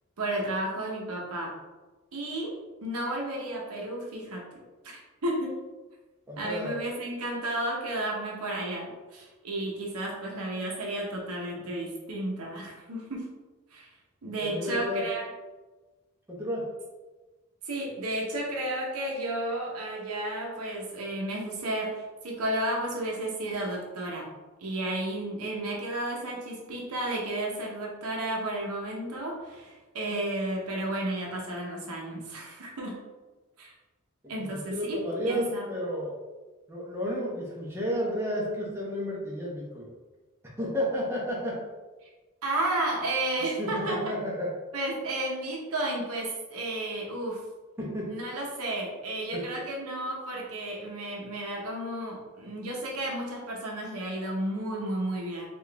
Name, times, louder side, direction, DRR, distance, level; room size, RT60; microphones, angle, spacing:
voice 1, 0.2-1.6 2.1-5.6 6.4-13.3 13.7-13.9 14.2-15.2 17.6-24.3 24.6-33.1 33.6-33.7 34.3-35.0 35.2-35.7 42.4-44.1 44.7-47.5 48.1-55.5, right 1 dB, 85° right, -2 dB, 0.7 m, -32 dB
voice 2, 6.3-6.7 14.4-15.1 16.3-16.7 34.2-34.3 34.7-36.2 36.7-39.9 40.6-41.6 43.6-44.5 47.8-48.1 49.3-49.6, equal, 10° right, -4 dB, 0.8 m, -31 dB
3.8 x 2.4 x 3.2 m, 1.2 s
head